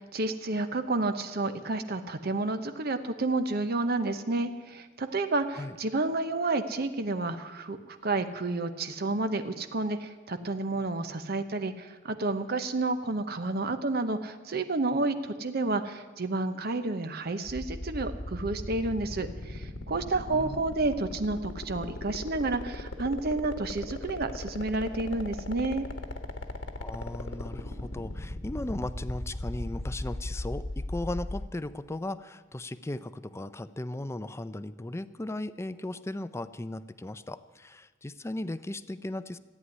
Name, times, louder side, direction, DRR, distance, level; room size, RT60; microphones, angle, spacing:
voice 1, 0.0-25.9, right 2 dB, 55° right, 9 dB, 0.9 m, -30 dB
sound 1, 17.4-31.5, left 1 dB, 75° left, 1.4 m, -36 dB
voice 2, 20.3-20.6 26.8-39.4, left 1 dB, 15° left, 14 dB, 0.5 m, -37 dB
14.5 x 9.6 x 9.7 m, 1.3 s
head